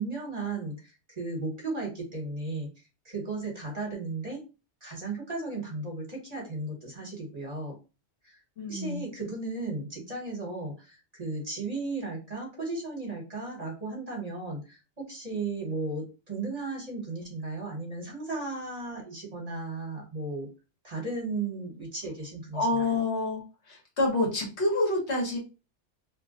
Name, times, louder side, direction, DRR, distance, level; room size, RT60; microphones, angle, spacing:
voice 1, 0.0-2.7 3.0-4.4 4.8-7.8 8.2-8.3 8.7-14.8 15.1-20.5 20.8-23.1, right 3 dB, 35° right, -1 dB, 1.2 m, -35 dB
voice 2, 8.6-9.0 22.5-25.4, left 2 dB, 65° left, -1 dB, 1.4 m, -28 dB
2.8 x 2.3 x 3.7 m, 0.30 s
omnidirectional pair, 1.2 m